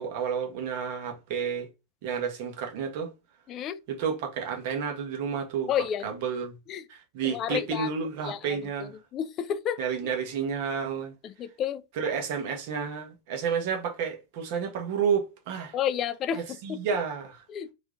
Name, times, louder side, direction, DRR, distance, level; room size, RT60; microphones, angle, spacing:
voice 1, 0.0-1.7 2.0-3.1 3.9-5.7 6.0-6.5 6.9-9.0 9.8-11.1 11.9-15.8 16.3-17.4, right 6 dB, 50° right, 1.2 m, -31 dB
voice 2, 3.5-3.8 5.7-6.0 6.7-6.8 7.3-7.9 8.3-8.4 9.1-9.8 11.4-11.8 15.7-16.4 16.7-16.8 17.5-17.7, left 9 dB, 30° left, 0.4 m, -29 dB
3.5 x 3.5 x 3.8 m
figure-of-eight pair, 90°, 0 cm